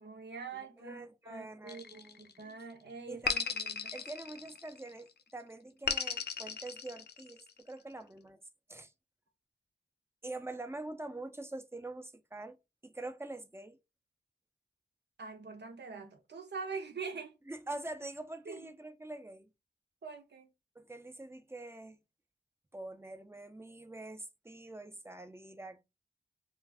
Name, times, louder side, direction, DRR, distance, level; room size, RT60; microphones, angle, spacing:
voice 1, 0.0-4.0 15.2-17.3 18.5-18.7 20.0-20.5, right 5 dB, 90° right, 0.7 m, -44 dB
voice 2, 0.5-2.5 3.1-3.5 3.9-8.4 8.7-8.9 10.2-12.6 12.8-13.8 17.5-19.5 20.8-22.0 22.7-25.8, right 2 dB, 15° right, 0.4 m, -45 dB
sound 1, 1.7-2.5 3.2-4.9 5.9-7.5, left 6 dB, 75° left, 0.4 m, -36 dB
2.4 x 2.4 x 3.3 m
wide cardioid pair, 70°, 17 cm